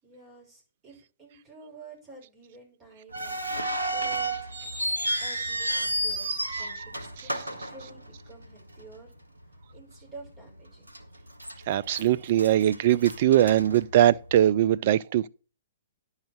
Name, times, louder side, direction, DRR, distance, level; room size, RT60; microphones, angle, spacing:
voice 1, 0.0-4.3 5.2-9.1 9.7-10.9, right 2 dB, 20° right, 6.3 m, -50 dB
sound 1, 3.1-8.4 8.7-8.8 9.6-9.8 10.2-10.3 10.9-11.5 11.9-14.4, right 1 dB, 90° right, 1.5 m, -31 dB
voice 2, 11.7-15.3, right 12 dB, 50° right, 0.4 m, -21 dB
10.5 x 5.7 x 6.1 m
figure-of-eight pair, 115°, 0 cm